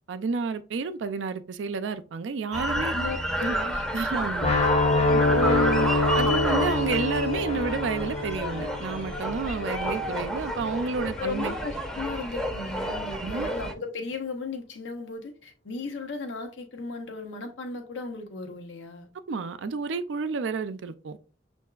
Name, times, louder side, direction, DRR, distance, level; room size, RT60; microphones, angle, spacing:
voice 1, 0.1-2.9 3.4-3.6 3.9-4.5 5.1-11.5 13.1-13.5 19.3-21.2, right 4 dB, 80° right, 0.4 m, -30 dB
sound 1, 2.5-13.7, right 1 dB, 5° left, 0.6 m, -31 dB
voice 2, 2.7-4.2 5.1-5.4 11.2-19.1, left 3 dB, 85° left, 0.7 m, -36 dB
sound 2, 4.4-10.3, left 2 dB, 35° left, 0.7 m, -25 dB
6.5 x 2.6 x 2.3 m
head